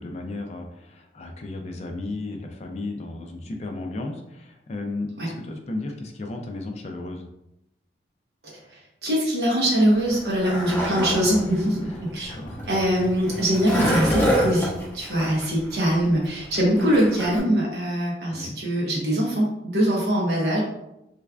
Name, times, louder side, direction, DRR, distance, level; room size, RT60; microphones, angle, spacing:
voice 1, 0.0-7.3 11.8-12.7 18.3-18.6, left 2 dB, 35° left, 3 dB, 0.4 m, -34 dB
voice 2, 9.0-12.3 12.7-20.6, equal, 60° right, -3 dB, 1.1 m, -23 dB
Skateboard, 9.9-17.4, equal, 10° left, 0.8 m, -28 dB
3.4 x 3.2 x 2.4 m, 0.85 s
head